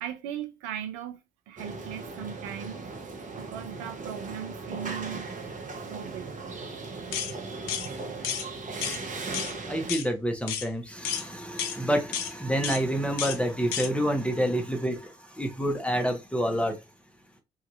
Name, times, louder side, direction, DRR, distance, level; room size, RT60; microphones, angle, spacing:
voice 1, 0.0-2.9 3.4-5.3 5.9-6.3, right 10 dB, 75° right, 0.4 m, -38 dB
sound 1, 1.6-9.9, right 3 dB, 40° right, 0.9 m, -38 dB
sound 2, 7.1-7.3 7.7-7.9 8.2-8.5 8.8-9.0 9.3-9.5 9.9-10.1 10.5-10.7 11.0-11.2 11.6-11.8 12.1-12.3 12.6-12.8 13.2-13.4 13.7-13.9, left 8 dB, 75° left, 0.5 m, -31 dB
voice 2, 9.7-16.8, equal, 5° left, 1.0 m, -28 dB
2.9 x 2.6 x 2.4 m
hypercardioid pair, 45°, 20 cm